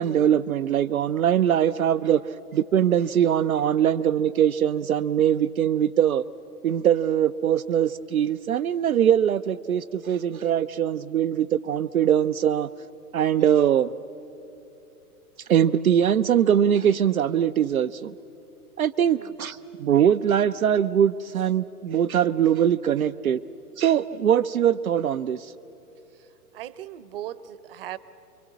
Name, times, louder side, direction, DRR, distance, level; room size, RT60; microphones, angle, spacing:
voice 1, 0.0-2.2 2.5-6.3 6.6-12.7 13.1-13.9 15.5-18.1 18.8-23.4 23.8-25.5, right 9 dB, 70° right, 9 dB, 0.6 m, -22 dB
voice 2, 26.1-28.0, right 12 dB, 40° right, 17 dB, 0.9 m, -39 dB
29.0 x 23.5 x 8.3 m, 3.0 s
figure-of-eight pair, 110°, 45 cm